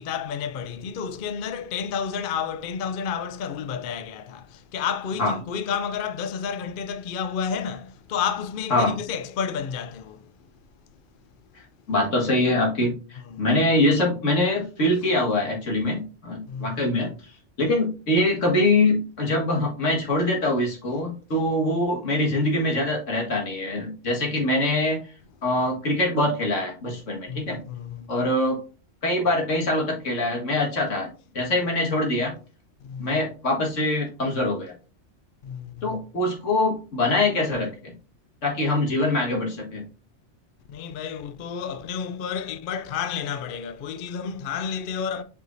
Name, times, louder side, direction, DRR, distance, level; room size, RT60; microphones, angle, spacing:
voice 1, 0.0-10.3 13.3-13.4 16.5-16.8 27.3-28.1 32.8-33.1 35.4-36.0 40.7-45.2, left 7 dB, 55° left, 0.6 m, -31 dB
voice 2, 11.9-17.1 17.6-25.1 25.4-27.6 28.1-28.6 29.0-31.1 31.3-32.4 33.0-34.7 35.8-37.9 38.4-39.8, left 1 dB, 80° left, 2.0 m, -23 dB
8.0 x 4.8 x 2.6 m
omnidirectional pair, 1.3 m